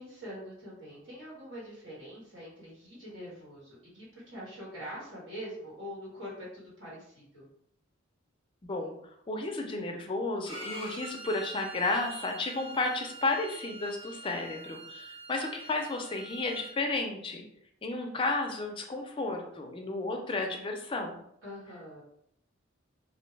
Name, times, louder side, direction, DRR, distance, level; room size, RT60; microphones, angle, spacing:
voice 1, 0.0-7.5 21.4-22.0, equal, 75° right, -7 dB, 1.4 m, -44 dB
voice 2, 8.6-9.0 9.3-17.4 17.8-21.2, left 2 dB, 25° left, 3 dB, 0.4 m, -32 dB
Bowed string instrument, 10.5-16.7, right 3 dB, 25° right, 0.8 m, -45 dB
2.6 x 2.1 x 3.1 m, 0.71 s
head